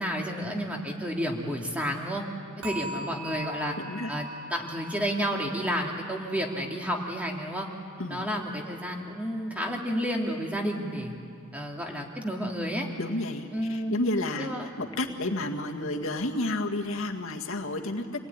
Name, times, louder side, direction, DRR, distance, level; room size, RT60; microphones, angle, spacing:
voice 1, 0.0-2.2 2.6-3.8 4.1-7.7 8.1-11.1 11.5-12.9 13.5-14.0 14.4-14.7 15.1-15.3, equal, 5° right, 0 dB, 2.7 m, -31 dB
sound 1, 2.6-9.7 10.0-10.4 10.9-11.0, right 1 dB, 85° right, 5.4 m, -43 dB
voice 2, 3.8-4.1 8.0-8.2 13.0-18.1, left 1 dB, 65° left, 3 dB, 2.0 m, -31 dB
28.0 x 19.5 x 9.8 m, 2.3 s
head